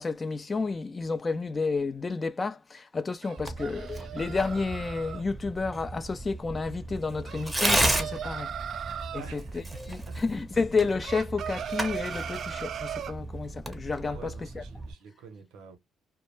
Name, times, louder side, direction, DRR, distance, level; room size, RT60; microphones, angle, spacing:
voice 1, 0.0-14.6, left 4 dB, 30° left, 0.3 m, -31 dB
sound 1, 3.2-5.2 7.2-9.3 11.0-13.2, right 9 dB, 55° right, 0.3 m, -37 dB
Tearing, 3.4-14.9, right 1 dB, 10° right, 0.7 m, -34 dB
voice 2, 9.1-10.2 14.1-15.8, right 6 dB, 85° right, 0.6 m, -48 dB
2.2 x 2.1 x 3.0 m
cardioid pair, 90°, 0 cm